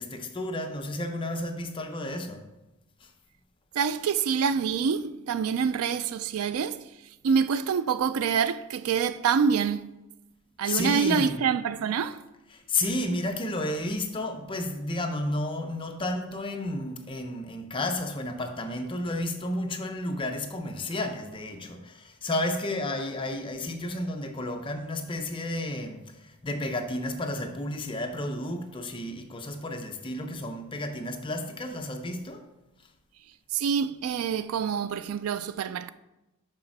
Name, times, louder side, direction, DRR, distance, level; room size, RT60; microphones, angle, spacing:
voice 1, 0.0-2.4 3.0-3.1 10.6-11.4 12.5-32.4, left 1 dB, 25° left, 0.6 m, -32 dB
voice 2, 3.7-6.9 7.2-9.9 10.6-12.2 33.5-35.9, right 6 dB, 70° right, 0.3 m, -26 dB
6.6 x 4.2 x 5.9 m
head